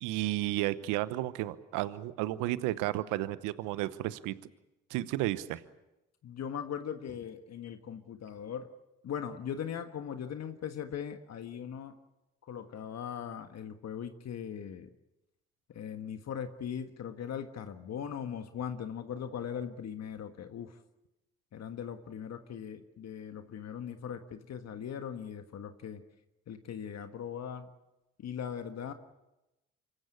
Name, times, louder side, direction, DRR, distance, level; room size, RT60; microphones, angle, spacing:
voice 1, 0.0-4.3 4.9-5.6, right 16 dB, 80° right, 15 dB, 1.0 m, -32 dB
voice 2, 6.2-8.7 9.0-12.0 12.4-14.9 15.7-20.8 21.5-26.0 26.5-27.7 28.2-28.9, left 8 dB, 60° left, 8 dB, 1.6 m, -39 dB
25.5 x 15.0 x 9.9 m, 0.95 s
hypercardioid pair, 50°, 30 cm